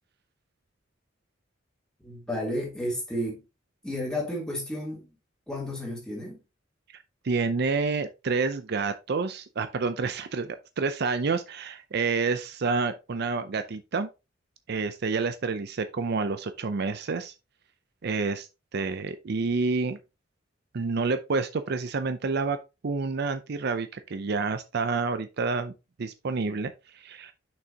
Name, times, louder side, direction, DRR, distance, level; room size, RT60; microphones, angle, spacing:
voice 1, 2.0-3.4 3.8-5.1 5.5-6.4, left 1 dB, 5° left, 3.1 m, -32 dB
voice 2, 7.2-14.1 14.7-17.3 18.0-20.0 20.7-22.6 22.8-25.7 26.0-27.3, right 4 dB, 55° right, 0.5 m, -29 dB
6.5 x 6.1 x 2.8 m
head